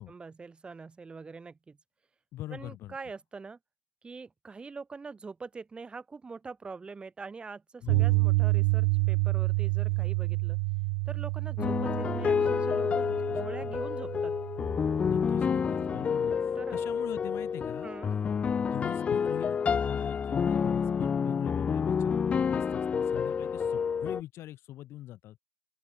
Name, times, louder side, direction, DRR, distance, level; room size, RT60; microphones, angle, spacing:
voice 1, 0.0-1.8 2.5-3.6 4.0-10.6 11.1-14.4 16.6-16.8 17.8-18.2, right 4 dB, 15° right, 2.5 m, -44 dB
voice 2, 2.3-3.0 7.8-8.4 9.9-10.0 13.1-13.7 15.0-17.9 18.6-25.4, left 14 dB, 40° left, 2.9 m, -42 dB
Piano, 7.9-16.0, right 31 dB, 60° right, 0.7 m, -29 dB
sound 1, 11.6-24.2, left 6 dB, 20° left, 0.3 m, -29 dB
open air
hypercardioid pair, 100°, 6 cm